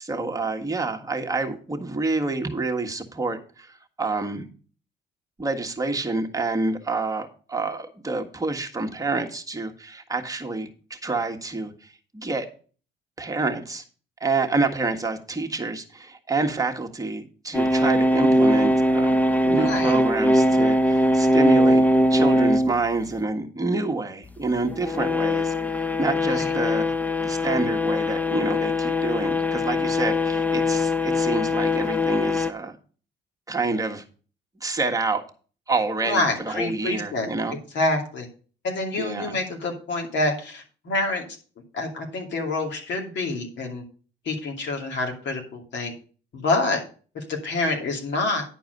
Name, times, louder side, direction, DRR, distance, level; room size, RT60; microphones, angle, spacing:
voice 1, 0.0-3.7 4.0-4.4 5.4-12.5 13.2-13.8 14.2-21.8 22.1-26.9 27.2-32.8 33.5-34.0 34.6-35.2 35.7-37.6 39.0-39.4, right 3 dB, 15° right, 2 dB, 1.6 m, -28 dB
sound 1, 17.5-22.7 24.6-32.5, left 1 dB, 10° left, 0.7 m, -21 dB
voice 2, 19.4-20.0 26.3-26.5 36.0-37.3 37.7-38.3 38.6-41.2 41.7-43.8 44.2-45.9 46.3-46.8 47.1-48.4, left 2 dB, 65° left, 2 dB, 2.6 m, -27 dB
10.5 x 4.7 x 6.5 m, 0.39 s
cardioid pair, 90°, 20 cm